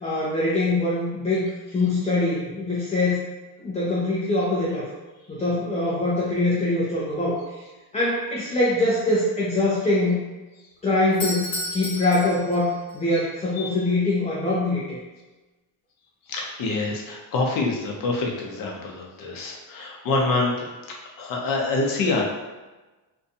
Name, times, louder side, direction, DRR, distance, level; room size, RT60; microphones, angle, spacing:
voice 1, 0.0-3.2 3.6-4.9 5.3-7.7 7.9-10.2 10.8-15.0, left 2 dB, 15° left, -6 dB, 0.4 m, -23 dB
Doorbell, 11.1-13.0, left 1 dB, 80° left, 0.9 m, -32 dB
voice 2, 16.3-22.3, left 3 dB, 55° left, -1 dB, 0.6 m, -26 dB
2.6 x 2.2 x 2.6 m, 1.2 s
cardioid pair, 135°, 42 cm